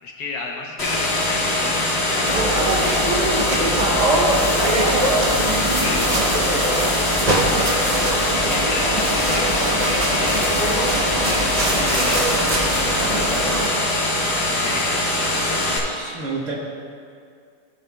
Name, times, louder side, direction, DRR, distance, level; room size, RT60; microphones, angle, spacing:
voice 1, 0.0-3.7 5.8-6.2 8.3-10.6 11.0-12.6 12.8-13.5 14.6-15.1, left 3 dB, 65° left, 0 dB, 1.4 m, -33 dB
sound 1, 0.8-15.8, left 1 dB, 40° left, 1.6 m, -22 dB
sound 2, 2.2-13.7, right 1 dB, 35° right, 0.7 m, -22 dB
voice 2, 5.2-5.6 15.9-16.5, right 3 dB, 50° right, -3 dB, 1.4 m, -30 dB
13.5 x 7.8 x 2.3 m, 2.2 s
omnidirectional pair, 1.8 m